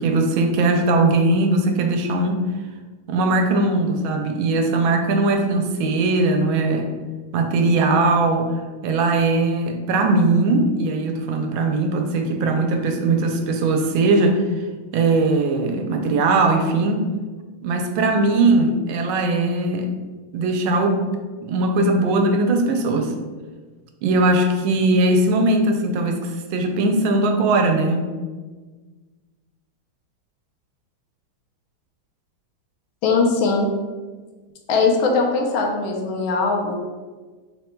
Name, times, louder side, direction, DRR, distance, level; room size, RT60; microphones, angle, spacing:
voice 1, 0.0-2.5 3.1-6.9 7.3-14.4 14.9-17.0 17.6-19.9 20.3-21.1 21.4-23.1 24.0-28.1, right 2 dB, 85° right, 4 dB, 1.4 m, -20 dB
voice 2, 33.0-33.7 34.7-36.7, left 4 dB, 85° left, 1 dB, 1.4 m, -20 dB
3.8 x 2.2 x 4.3 m, 1.4 s
omnidirectional pair, 2.2 m